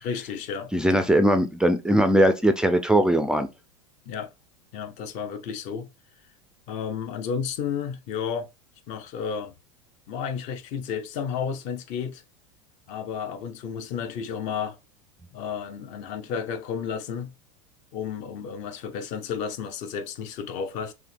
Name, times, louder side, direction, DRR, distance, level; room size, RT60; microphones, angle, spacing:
voice 1, 0.0-1.1 4.1-4.3 4.7-5.9 6.7-8.5 8.9-9.5 10.1-12.2 12.9-14.8 15.3-17.3 17.9-20.9, left 7 dB, 50° left, 0.7 m, -32 dB
voice 2, 0.7-3.5, right 1 dB, 5° right, 0.3 m, -20 dB
5.9 x 2.2 x 3.3 m
supercardioid pair, 125°, 17 cm